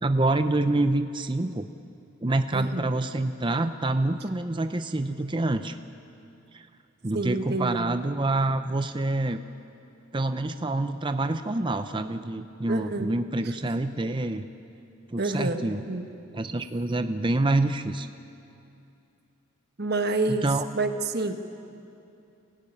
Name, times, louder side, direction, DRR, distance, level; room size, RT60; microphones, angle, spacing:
voice 1, 0.0-1.7 2.2-5.7 6.5-6.7 7.0-9.4 10.1-14.5 15.1-15.8 16.3-18.1 20.3-20.6, right 2 dB, 20° right, 8 dB, 0.6 m, -27 dB
voice 2, 2.5-2.9 7.1-8.0 12.7-13.1 15.2-16.1 19.8-20.5 20.7-21.3, right 2 dB, 50° right, 6 dB, 1.4 m, -28 dB
25.5 x 16.5 x 9.8 m, 2.7 s
head